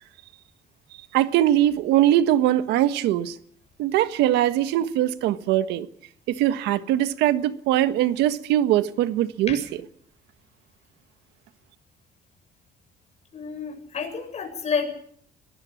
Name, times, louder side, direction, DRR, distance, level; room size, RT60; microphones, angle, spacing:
voice 1, 1.1-3.4 3.8-5.9 6.3-9.6, right 12 dB, 90° right, 1.5 m, -21 dB
voice 2, 13.3-14.9, left 6 dB, 40° left, 7.6 m, -29 dB
23.0 x 18.5 x 7.3 m
cardioid pair, 110°, 17 cm